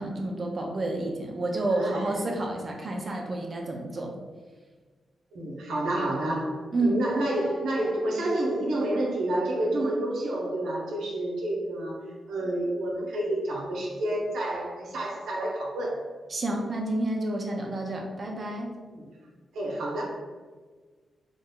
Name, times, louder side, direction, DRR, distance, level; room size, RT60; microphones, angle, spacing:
voice 1, 0.0-4.1 6.7-7.0 16.3-18.7, right 2 dB, 45° right, 1 dB, 0.6 m, -29 dB
voice 2, 1.7-2.1 5.3-12.0 12.3-16.0 18.9-19.1 19.5-20.0, right 1 dB, 90° right, -3 dB, 0.7 m, -29 dB
3.1 x 2.1 x 3.7 m, 1.4 s
cardioid pair, 65°, 0 cm